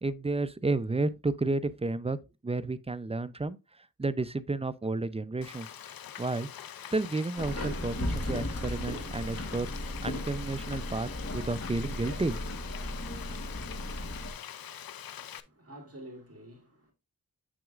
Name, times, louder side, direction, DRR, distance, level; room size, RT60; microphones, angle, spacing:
voice 1, 0.0-2.2 2.4-3.6 4.0-5.7 6.2-6.5 6.9-9.7 10.0-12.3, right 3 dB, 15° right, 0.5 m, -31 dB
Frying (food), 5.4-15.4, left 9 dB, 80° left, 0.6 m, -44 dB
Subway metro underground, 7.4-14.3, left 1 dB, 40° left, 1.3 m, -36 dB
voice 2, 15.4-16.9, right 1 dB, 40° right, 2.6 m, -48 dB
7.1 x 6.2 x 2.4 m
wide cardioid pair, 75°, 35 cm